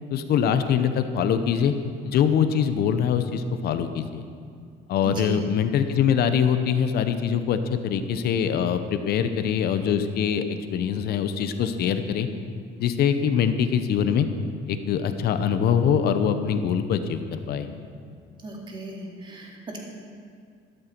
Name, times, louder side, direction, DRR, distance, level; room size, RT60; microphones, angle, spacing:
voice 1, 0.1-1.7 2.0-4.2 4.9-10.4 10.7-12.3 12.8-14.3 14.7-17.7, left 8 dB, 60° left, 9 dB, 0.9 m, -23 dB
voice 2, 5.0-5.4 18.4-19.8, right 2 dB, 25° right, -1 dB, 2.4 m, -36 dB
12.5 x 12.0 x 4.6 m, 2.2 s
cardioid pair, 130°, 19 cm